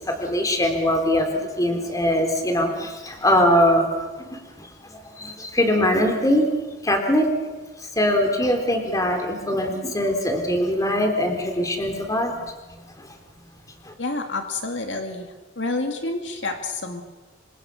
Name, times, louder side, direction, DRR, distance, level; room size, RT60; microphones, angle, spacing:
voice 1, 0.0-6.5 6.8-7.3 8.0-12.5 12.8-13.1 13.9-14.0, left 1 dB, 20° left, 4 dB, 3.8 m, -22 dB
voice 2, 14.0-17.0, left 2 dB, 70° left, 5 dB, 2.3 m, -29 dB
26.5 x 25.0 x 6.5 m, 1.2 s
head